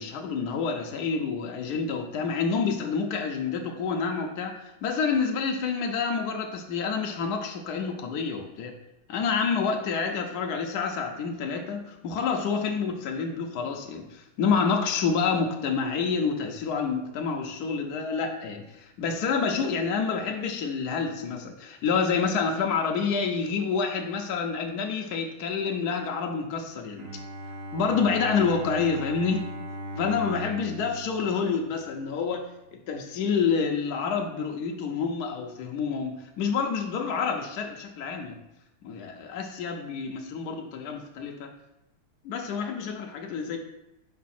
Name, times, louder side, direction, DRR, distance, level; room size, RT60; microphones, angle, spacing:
voice 1, 0.0-8.7 9.1-27.1 27.7-29.5 30.0-32.5 32.7-38.4 38.8-41.5 42.2-43.6, left 5 dB, 85° left, 3 dB, 0.8 m, -28 dB
Bowed string instrument, 27.0-32.2, equal, 80° right, 1.8 m, -38 dB
5.1 x 4.7 x 4.2 m, 0.91 s
omnidirectional pair, 2.4 m